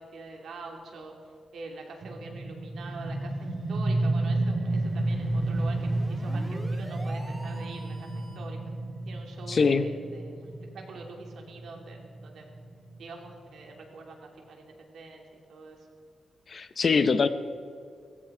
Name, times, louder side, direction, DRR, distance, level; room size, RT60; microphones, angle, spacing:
voice 1, 0.0-8.1 8.3-8.6 9.1-12.5 13.0-15.2 15.5-15.9, right 3 dB, 75° right, 1 dB, 2.8 m, -45 dB
sound 1, 2.0-13.5, right 2 dB, 45° right, 1.7 m, -31 dB
sound 2, 4.7-8.6, equal, 5° right, 1.7 m, -46 dB
voice 2, 9.5-9.9 16.5-17.3, left 5 dB, 40° left, 12 dB, 0.7 m, -23 dB
17.0 x 15.5 x 4.9 m, 2.4 s
wide cardioid pair, 145°, 0 cm